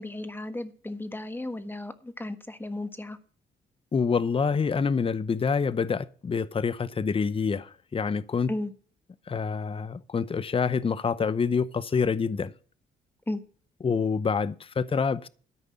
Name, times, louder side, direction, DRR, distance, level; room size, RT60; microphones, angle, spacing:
voice 1, 0.0-3.2 8.5-8.7 13.3-13.4, left 1 dB, 10° left, 1.5 m, -34 dB
voice 2, 3.9-8.5 9.3-12.5 13.8-15.3, left 5 dB, 30° left, 0.7 m, -27 dB
13.5 x 5.3 x 8.5 m
cardioid pair, 90°, 20 cm